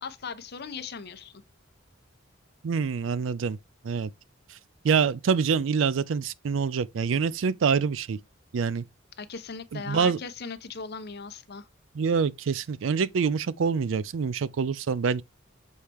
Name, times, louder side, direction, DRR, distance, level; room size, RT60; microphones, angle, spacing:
voice 1, 0.0-1.4 9.2-11.7, left 5 dB, 55° left, 0.8 m, -38 dB
voice 2, 2.6-3.6 3.8-4.1 4.5-4.6 4.8-8.2 8.5-8.8 9.7-10.2 11.9-15.2, right 6 dB, 70° right, 0.4 m, -26 dB
6.4 x 4.3 x 3.4 m
head